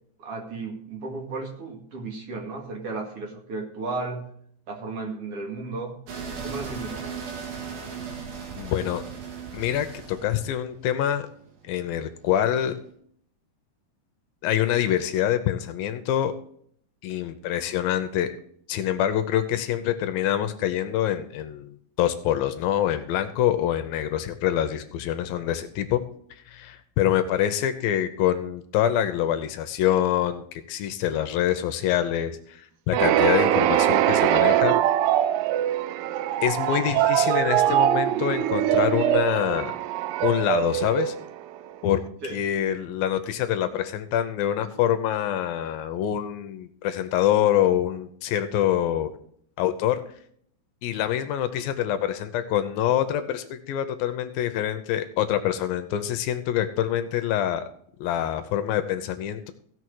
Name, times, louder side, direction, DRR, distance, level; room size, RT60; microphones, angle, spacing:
voice 1, 0.2-4.3 4.7-5.9 6.4-7.1 42.2-42.4, right 3 dB, 45° right, 1 dB, 2.5 m, -34 dB
sound 1, 6.1-12.8, right 6 dB, 65° right, 4.0 m, -37 dB
voice 2, 8.6-9.0 9.5-11.3 11.7-12.8 14.4-16.3 17.0-18.3 18.7-26.0 26.3-34.8 36.4-39.7 40.2-41.2 41.8-42.0 42.3-49.1 49.6-50.0 50.8-57.6 58.0-59.5, left 11 dB, 75° left, 9 dB, 2.4 m, -25 dB
sound 2, 32.9-41.7, right 12 dB, 85° right, 2.7 m, -22 dB
16.0 x 6.5 x 4.7 m, 0.64 s
omnidirectional pair, 4.6 m